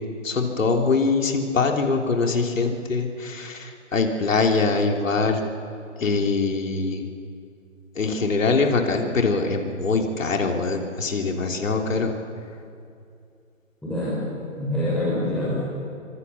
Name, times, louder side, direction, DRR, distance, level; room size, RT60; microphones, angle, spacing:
voice 1, 0.2-5.4 6.0-7.1 7.9-12.1, left 4 dB, 75° left, 2 dB, 3.2 m, -23 dB
voice 2, 13.8-14.2 14.6-15.6, left 1 dB, ahead, -10 dB, 6.4 m, -25 dB
25.0 x 24.5 x 7.1 m, 2.4 s
hypercardioid pair, 150°, 39 cm